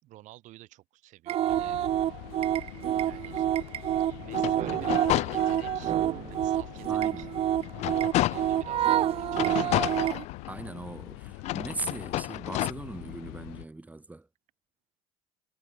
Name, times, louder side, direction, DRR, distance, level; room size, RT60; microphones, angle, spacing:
voice 1, 0.0-1.8 3.0-3.5 4.1-6.0 6.3-7.3 8.1-10.1, right 16 dB, 65° right, 4.4 m, -50 dB
sound 1, 1.3-10.2, right 12 dB, 45° right, 0.6 m, -28 dB
sound 2, 1.5-13.6, left 40 dB or more, 85° left, 5.7 m, -44 dB
sound 3, 4.3-5.9 6.4-6.5 7.0-8.7 9.3-10.8 11.4-12.7, left 16 dB, 55° left, 0.4 m, -31 dB
voice 2, 6.9-7.4 10.5-14.3, right 2 dB, 10° right, 2.0 m, -39 dB
supercardioid pair, 105°, 14 cm